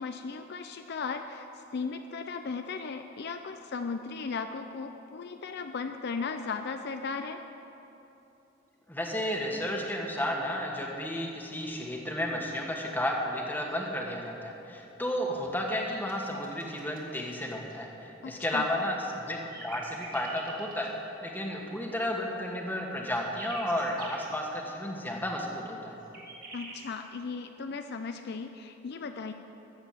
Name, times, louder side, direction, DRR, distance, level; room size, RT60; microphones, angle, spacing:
voice 1, 0.0-7.4 18.2-18.7 26.5-29.3, left 4 dB, 55° left, 7 dB, 0.5 m, -36 dB
voice 2, 8.9-20.9 21.2-25.9, left 1 dB, 10° left, 0 dB, 1.4 m, -32 dB
sound 1, 15.4-17.8 19.0-20.9 22.4-24.3 25.8-26.8, right 3 dB, 45° right, 2.4 m, -46 dB
14.0 x 7.6 x 7.3 m, 2.9 s
head